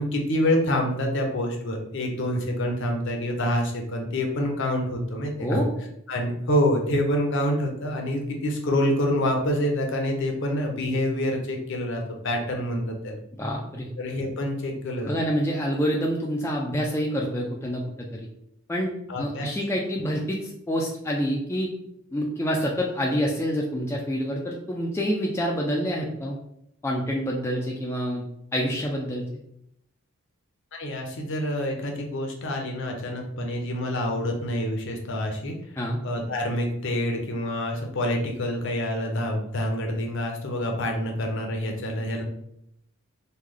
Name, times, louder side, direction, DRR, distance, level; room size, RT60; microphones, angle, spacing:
voice 1, 0.0-5.6 6.1-13.2 14.0-15.2 19.1-19.5 30.7-35.5 36.0-42.2, left 1 dB, 55° left, 2 dB, 0.6 m, -27 dB
voice 2, 13.4-13.9 15.0-18.2 18.7-18.9 19.2-21.7 22.1-26.4 26.8-28.2 28.5-29.2 35.8-36.0, equal, 10° left, -1 dB, 0.3 m, -27 dB
3.2 x 2.2 x 3.6 m, 0.76 s
head